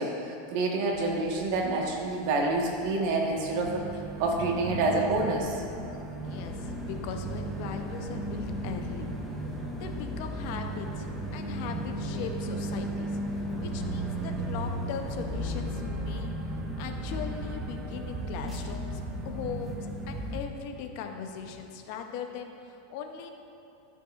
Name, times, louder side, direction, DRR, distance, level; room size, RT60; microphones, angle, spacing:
voice 1, 0.0-3.8 4.2-5.6, right 2 dB, 55° right, 0 dB, 1.2 m, -28 dB
sound 1, 0.9-20.4, right 1 dB, 15° right, 0.6 m, -36 dB
voice 2, 6.2-9.1 9.7-13.2 13.6-23.3, left 7 dB, 50° left, 5 dB, 0.6 m, -39 dB
sound 2, 6.2-15.6, equal, 10° left, 0.7 m, -43 dB
12.0 x 5.5 x 2.4 m, 2.8 s
supercardioid pair, 160°, 0 cm